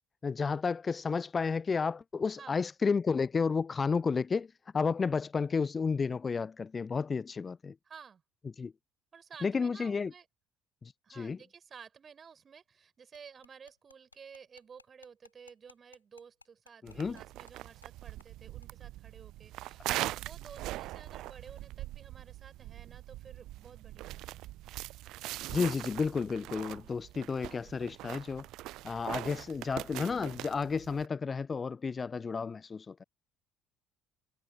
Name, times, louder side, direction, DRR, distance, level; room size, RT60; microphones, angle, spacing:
voice 1, 0.2-7.7 8.6-8.7 9.4-10.1 10.8-11.4 16.8-17.2 20.0-20.1 25.5-28.5 28.8-33.0, left 5 dB, 30° left, 0.4 m, -32 dB
voice 2, 7.8-8.2 9.1-10.3 11.0-24.4, right 6 dB, 35° right, 6.6 m, -53 dB
sound 1, 13.1-17.5 17.8-17.9 18.2-18.3 18.6-18.7, left 4 dB, 85° left, 3.1 m, -60 dB
sound 2, 16.9-31.1, right 16 dB, 55° right, 0.4 m, -42 dB
figure-of-eight pair, 55°, 0 cm